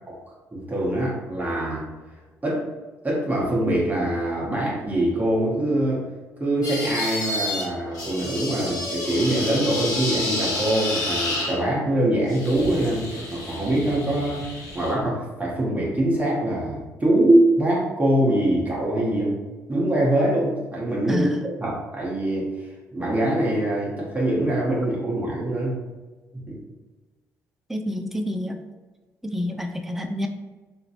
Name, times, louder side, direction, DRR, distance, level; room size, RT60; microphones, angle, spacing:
voice 1, 0.5-1.9 2.4-2.7 3.0-6.0 6.4-19.3 19.7-25.8 26.3-26.6, right 1 dB, 20° right, -5 dB, 1.1 m, -23 dB
sound 1, 6.6-7.6 7.9-11.6 12.3-14.9, left 2 dB, 50° left, 1.1 m, -30 dB
voice 2, 21.1-21.4 27.7-28.6 29.2-30.3, left 1 dB, 5° right, 5 dB, 0.4 m, -28 dB
2.8 x 2.6 x 2.9 m, 1.3 s
hypercardioid pair, 45°, 8 cm